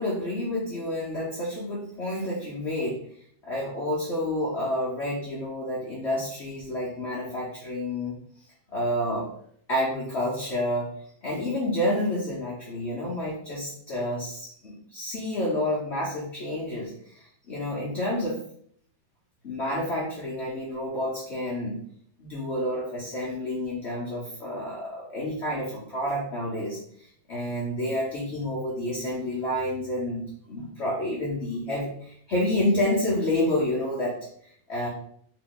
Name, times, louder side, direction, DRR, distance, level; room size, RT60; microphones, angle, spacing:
voice 1, 0.0-3.0 3.4-8.2 8.7-9.3 9.7-10.9 11.2-18.4 19.4-21.8 22.2-34.9, left 1 dB, 60° left, -5 dB, 0.7 m, -29 dB
2.9 x 2.8 x 3.9 m, 0.63 s
omnidirectional pair, 2.1 m